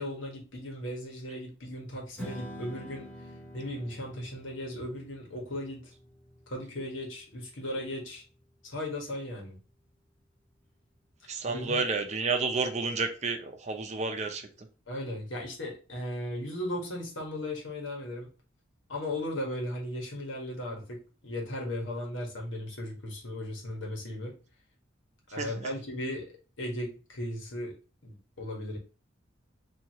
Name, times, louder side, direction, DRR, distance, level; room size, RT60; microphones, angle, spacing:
voice 1, 0.0-3.1 3.5-5.9 6.5-8.2 8.6-9.6 11.5-11.8 14.9-18.3 18.9-24.3 25.3-26.3 26.6-27.7 28.0-28.8, left 1 dB, 80° left, -1 dB, 1.4 m, -36 dB
Strum, 2.2-8.5, equal, 5° left, 0.9 m, -47 dB
voice 2, 11.3-14.4 25.4-25.7, right 4 dB, 35° right, 5 dB, 0.6 m, -30 dB
4.6 x 2.8 x 2.8 m, 0.34 s
head